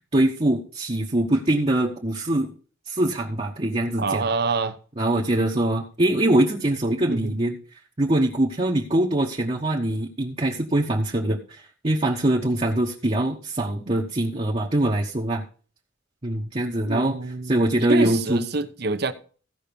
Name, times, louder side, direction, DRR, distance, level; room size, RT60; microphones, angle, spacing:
voice 1, 0.1-2.5 2.9-4.3 5.0-15.4 16.2-17.2 17.4-18.4, right 1 dB, 30° right, 1.1 m, -23 dB
voice 2, 4.0-4.8 7.1-7.3 16.9-17.6 17.9-19.1, right 3 dB, 55° right, 0.9 m, -26 dB
15.5 x 5.7 x 5.2 m
head